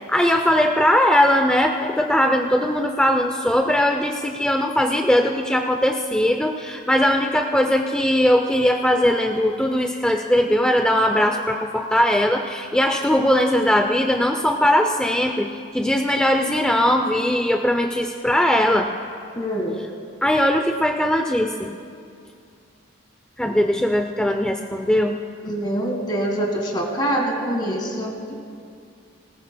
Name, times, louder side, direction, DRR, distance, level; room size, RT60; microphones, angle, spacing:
voice 1, 0.1-18.9 20.2-21.8 23.4-25.2, left 1 dB, 5° left, 4 dB, 0.4 m, -20 dB
voice 2, 19.3-19.7 23.4-23.6 25.4-28.1, right 1 dB, 20° left, 1 dB, 1.6 m, -25 dB
19.5 x 19.0 x 2.2 m, 2.3 s
head